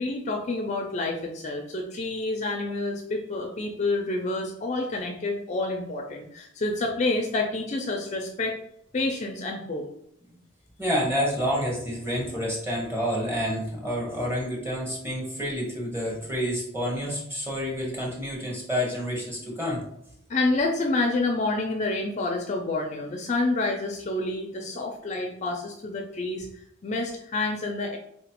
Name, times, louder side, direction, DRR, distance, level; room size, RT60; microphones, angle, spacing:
voice 1, 0.0-8.6 8.9-9.9 11.2-11.3 20.3-26.5 26.8-28.0, left 2 dB, 35° left, 2 dB, 0.4 m, -28 dB
voice 2, 10.8-19.8, equal, 15° right, -4 dB, 1.1 m, -29 dB
4.2 x 3.0 x 2.9 m, 0.74 s
head